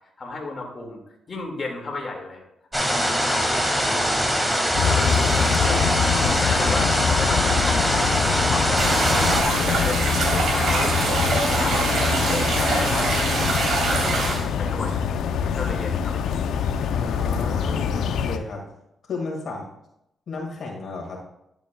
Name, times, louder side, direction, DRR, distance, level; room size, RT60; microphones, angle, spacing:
voice 1, 0.2-1.0 1.3-2.4 2.7-3.6 3.9-4.2 4.8-5.9 6.5-8.1 8.5-9.1 9.4-10.9 11.6-12.0 12.4-13.5 13.7-15.0 15.4-16.3, left 3 dB, 45° left, 1 dB, 1.9 m, -33 dB
sound 1, 2.7-9.4, equal, 5° right, 1.7 m, -22 dB
sound 2, 4.7-18.4, left 7 dB, 80° left, 0.5 m, -25 dB
sound 3, 8.8-14.4, right 2 dB, 70° right, 3.2 m, -23 dB
voice 2, 16.9-18.6 19.1-19.7 20.3-21.2, left 3 dB, 65° left, -1 dB, 1.7 m, -33 dB
11.0 x 6.8 x 2.2 m, 0.81 s
cardioid pair, 70°, 0 cm